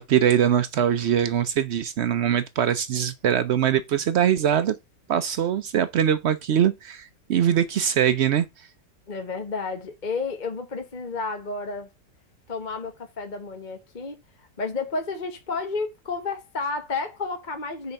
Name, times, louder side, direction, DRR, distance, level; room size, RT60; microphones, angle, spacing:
voice 1, 0.0-4.8 5.1-8.5, right 9 dB, 85° right, 0.5 m, -22 dB
voice 2, 9.1-11.9 12.5-17.9, left 4 dB, 30° left, 1.2 m, -31 dB
9.6 x 3.8 x 5.6 m
omnidirectional pair, 1.9 m